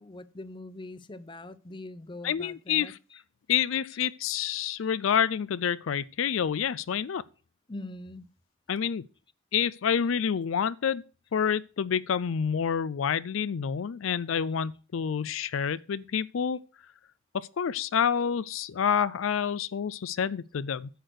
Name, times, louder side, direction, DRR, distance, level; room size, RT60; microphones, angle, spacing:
voice 1, 0.0-3.2 7.7-8.3, left 2 dB, 25° left, 0.6 m, -43 dB
voice 2, 2.2-3.0 3.5-7.2 8.7-9.0 9.5-11.0 11.3-16.6 17.3-20.9, left 7 dB, 70° left, 0.4 m, -28 dB
10.0 x 6.6 x 6.3 m
head